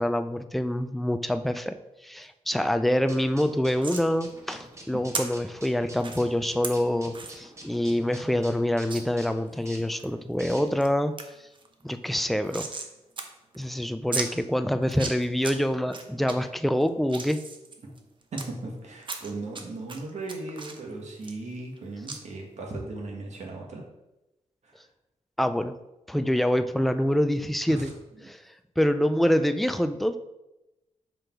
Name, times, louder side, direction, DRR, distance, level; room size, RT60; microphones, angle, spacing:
voice 1, 0.0-1.7 2.0-11.1 11.8-12.7 13.5-17.4 25.4-25.7 26.1-27.9 28.2-30.2, equal, ahead, 9 dB, 0.4 m, -26 dB
sound 1, 3.1-10.9, right 1 dB, 25° right, 1.1 m, -48 dB
sound 2, 3.8-4.1 5.1-5.2 6.0-6.2 6.6-6.7 7.1-7.4 7.7-7.8 8.1-8.2 8.9-9.0 9.5-10.1 10.5-10.9 11.2-11.3 11.5-12.9 13.2-13.3 13.5-13.6 14.1-14.3 14.8-15.5 15.9-16.3 16.8-18.4 19.0-19.6 19.9-21.8 22.1-22.2, right 4 dB, 45° right, 0.8 m, -35 dB
voice 2, 18.3-23.8 24.6-24.8 27.7-27.9 28.2-28.3, right 2 dB, 75° right, 0 dB, 1.8 m, -37 dB
5.9 x 5.1 x 4.5 m, 0.96 s
wide cardioid pair, 140°, 12 cm